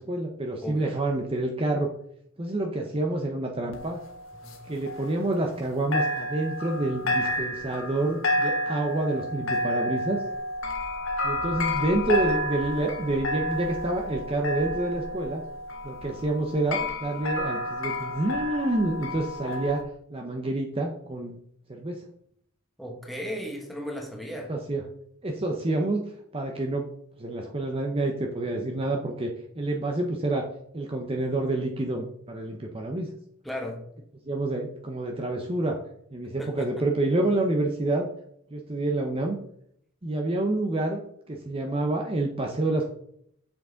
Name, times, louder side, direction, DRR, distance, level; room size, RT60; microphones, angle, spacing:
voice 1, 0.0-1.9 2.4-4.0 4.7-10.2 11.2-15.4 15.8-19.8 20.1-21.4 21.7-22.0 24.5-24.8 25.2-26.0 26.3-26.8 27.2-29.3 29.6-30.5 30.7-33.1 34.2-35.8 36.1-38.1 38.5-39.4 40.0-42.8, right 2 dB, 25° right, 1 dB, 0.7 m, -28 dB
sound 1, 3.7-5.7 5.9-19.8, left 1 dB, 65° left, 1.4 m, -30 dB
voice 2, 22.8-24.5 33.4-33.8 36.4-36.8, equal, ahead, 1 dB, 1.3 m, -35 dB
7.3 x 6.0 x 3.9 m, 0.69 s
head